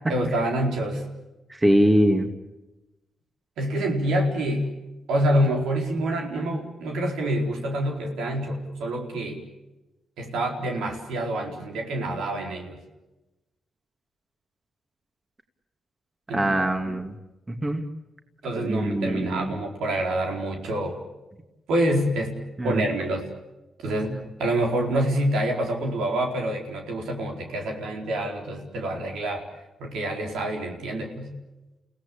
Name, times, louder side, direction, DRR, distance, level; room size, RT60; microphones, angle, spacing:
voice 1, 0.1-1.0 3.6-4.7 5.1-9.4 10.2-12.8 16.3-16.6 18.4-20.9 21.7-22.3 22.6-23.3 23.8-29.4 29.8-31.3, right 1 dB, 85° right, 2 dB, 4.4 m, -27 dB
voice 2, 1.5-2.3 16.3-17.2 17.5-17.8 18.6-19.6 22.6-22.8 24.1-24.2, right 1 dB, 20° right, 6 dB, 2.4 m, -23 dB
30.0 x 17.5 x 8.6 m, 1.0 s
cardioid pair, 80°, 0 cm